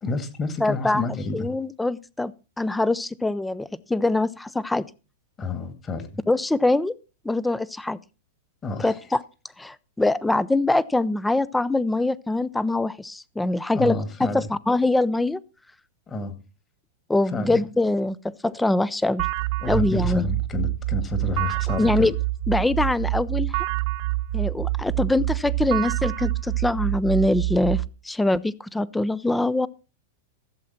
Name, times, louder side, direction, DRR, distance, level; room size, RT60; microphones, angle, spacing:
voice 1, 0.0-1.5 5.4-6.2 8.6-8.9 13.7-14.5 16.1-16.4 17.3-17.6 19.6-22.1, left 3 dB, 25° left, 2.1 m, -29 dB
voice 2, 0.6-1.0 1.3-2.3 2.6-4.9 6.3-6.9 7.2-8.0 8.8-9.2 9.6-15.4 17.1-19.3 19.7-20.2 21.8-22.1 22.5-23.6 24.3-29.7, left 2 dB, 5° left, 0.5 m, -23 dB
sound 1, 19.2-27.9, right 19 dB, 55° right, 0.6 m, -26 dB
15.0 x 7.4 x 4.3 m
hypercardioid pair, 105°, 0 cm